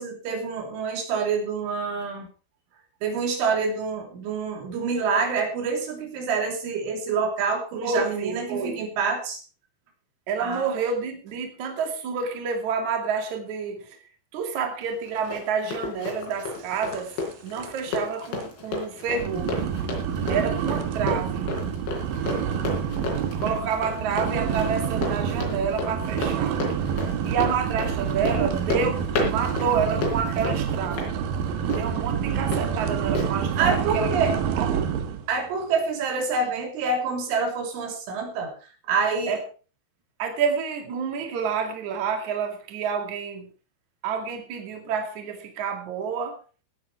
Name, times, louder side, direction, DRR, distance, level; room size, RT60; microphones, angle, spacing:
voice 1, 0.0-2.3 3.0-9.4 10.4-10.7 33.6-34.3 35.3-39.4, right 4 dB, 90° right, 3 dB, 5.7 m, -27 dB
voice 2, 7.8-8.8 10.3-14.0 14.3-17.1 17.4-19.7 20.3-21.5 23.4-26.6 27.2-31.2 31.6-35.0 39.3-39.4 40.2-43.5 44.0-46.4, right 6 dB, 45° right, 4 dB, 3.2 m, -29 dB
Run, 14.8-32.6 33.2-33.3, left 3 dB, 75° left, 5.8 m, -33 dB
sound 1, 16.9-17.3 17.6-18.0 18.4-18.5 19.1-35.2, right 8 dB, 65° right, 2.5 m, -28 dB
17.0 x 9.4 x 4.8 m, 0.36 s
omnidirectional pair, 5.3 m